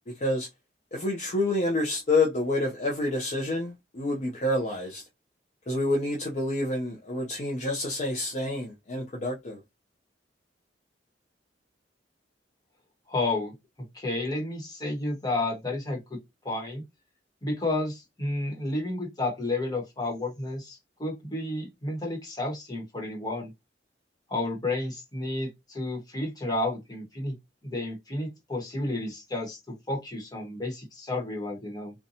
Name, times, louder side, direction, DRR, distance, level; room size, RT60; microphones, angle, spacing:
voice 1, 0.9-5.0 5.7-9.6, left 2 dB, 40° left, 0.5 m, -28 dB
voice 2, 13.1-13.5 13.9-16.0 16.4-16.8 17.4-23.5 24.3-27.3 27.6-31.9, left 2 dB, 20° left, 1.0 m, -31 dB
2.7 x 2.2 x 2.6 m
head